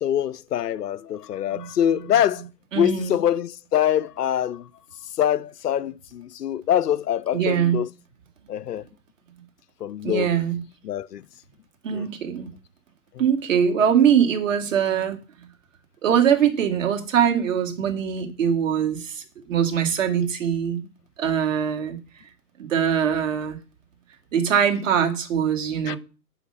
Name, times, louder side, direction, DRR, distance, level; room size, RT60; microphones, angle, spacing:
voice 1, 0.0-2.4 2.7-4.6 5.2-7.9 8.5-8.8 9.8-10.3 10.8-11.2 11.9-12.1 25.9-26.0, left 10 dB, 75° left, 0.5 m, -24 dB
voice 2, 2.7-3.2 7.3-7.8 10.0-10.6 11.8-12.5 13.2-15.2 16.0-20.8 21.2-22.0 22.6-23.6 24.3-26.0, right 8 dB, 50° right, 2.2 m, -22 dB
5.7 x 5.6 x 6.8 m
figure-of-eight pair, 120°, 48 cm